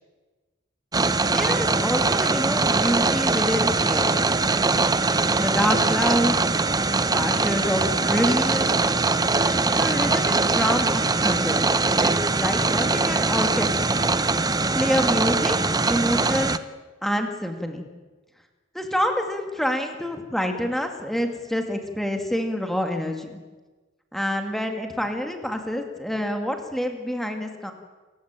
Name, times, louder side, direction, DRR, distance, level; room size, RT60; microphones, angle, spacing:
sound 1, 0.9-16.6, right 3 dB, 20° right, 0.7 m, -22 dB
voice 1, 1.3-4.2 5.4-6.6 6.9-8.8 9.6-14.1 14.7-15.6 15.8-16.6 17.0-17.9 18.7-23.3 24.1-27.7, equal, ahead, 4 dB, 2.3 m, -27 dB
28.5 x 15.0 x 9.0 m, 1.2 s
head